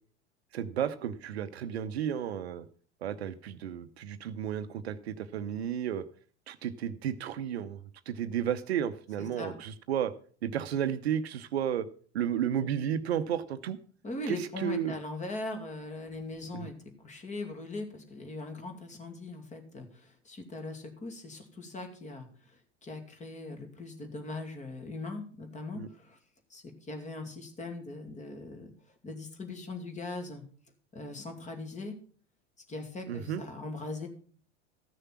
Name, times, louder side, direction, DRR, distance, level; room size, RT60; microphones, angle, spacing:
voice 1, 0.5-2.6 3.0-6.1 6.5-7.8 8.1-10.1 10.4-11.9 12.1-13.8 14.3-14.9 16.5-16.7 25.7-25.9 33.1-33.4, right 9 dB, 65° right, 13 dB, 0.8 m, -32 dB
voice 2, 9.2-9.6 14.0-16.7 17.0-26.2 26.5-28.7 29.0-30.4 30.9-31.9 32.7-34.1, left 2 dB, 20° left, 5 dB, 2.3 m, -40 dB
14.0 x 6.6 x 5.8 m, 0.43 s
figure-of-eight pair, 80°, 35 cm